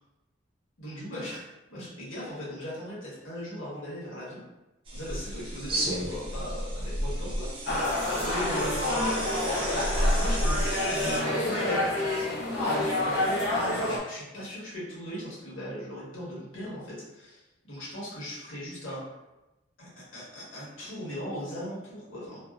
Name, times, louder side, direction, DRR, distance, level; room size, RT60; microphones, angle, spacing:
voice 1, 0.8-4.4 4.9-9.1 9.8-11.8 12.1-19.0 19.8-22.4, equal, 85° left, -8 dB, 1.2 m, -39 dB
sound 1, 4.9-11.2, equal, 25° right, 0.5 m, -31 dB
sound 2, 7.7-14.0, left 1 dB, 65° left, 0.8 m, -28 dB
2.6 x 2.1 x 2.3 m, 1.0 s
head